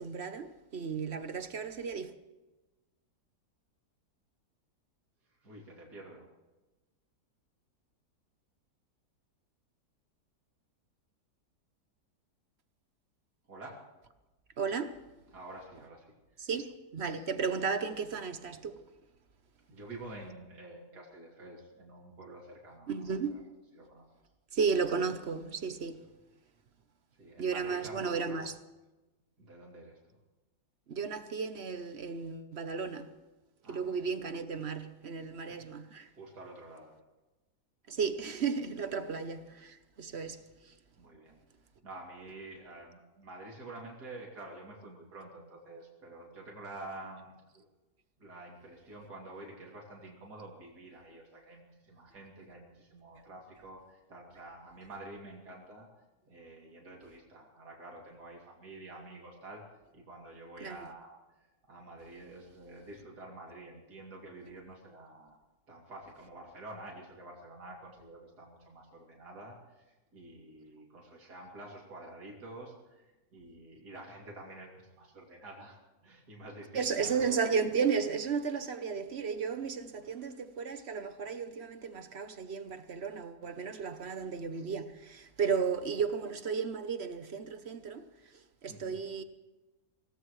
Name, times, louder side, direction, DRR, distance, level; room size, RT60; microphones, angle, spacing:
voice 1, 0.0-2.1 14.6-15.0 16.4-18.8 22.9-23.4 24.5-26.0 27.4-28.5 30.9-33.1 33.7-36.1 37.9-40.7 60.6-60.8 76.7-88.1 88.6-89.2, right 5 dB, 50° right, 1.0 m, -34 dB
voice 2, 5.4-6.3 13.5-13.8 15.3-16.4 19.7-23.4 23.7-24.1 27.2-28.4 29.4-30.2 33.6-34.0 36.1-37.0 41.0-41.4 41.8-47.6 48.2-55.9 56.3-59.6 59.9-61.4 61.7-65.4 65.7-75.8 76.0-77.2 80.0-80.3 85.6-85.7 88.7-89.0, right 2 dB, 70° right, 3.4 m, -49 dB
24.5 x 17.5 x 3.2 m
omnidirectional pair, 1.8 m